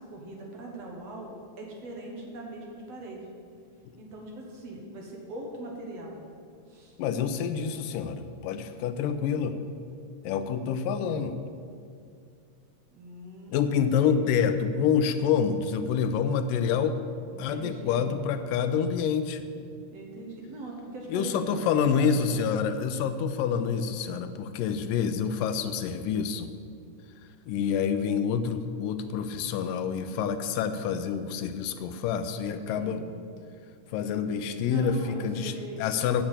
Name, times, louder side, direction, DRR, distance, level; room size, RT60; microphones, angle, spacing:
voice 1, 0.0-3.4 4.0-6.2 6.7-7.0 12.9-14.6 17.3-18.2 19.9-22.4 24.0-24.3 32.8-33.1 34.6-35.9, right 1 dB, 55° right, -1 dB, 2.2 m, -41 dB
voice 2, 7.0-9.6 10.2-11.4 13.5-17.0 17.4-19.4 21.1-26.5 27.5-33.0 33.9-35.5 35.8-36.2, left 7 dB, 85° left, 9 dB, 2.3 m, -27 dB
8.9 x 7.3 x 8.1 m, 2.3 s
omnidirectional pair, 3.8 m